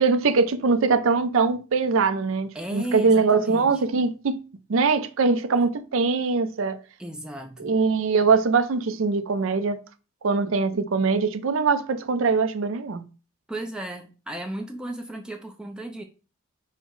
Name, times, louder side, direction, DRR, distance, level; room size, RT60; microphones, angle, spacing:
voice 1, 0.0-4.4 4.7-6.8 7.6-9.8 10.2-13.1, right 4 dB, 65° right, 0.5 m, -22 dB
voice 2, 2.5-3.8 7.0-7.7 13.5-16.0, right 1 dB, 5° right, 0.4 m, -35 dB
5.5 x 2.1 x 4.6 m
head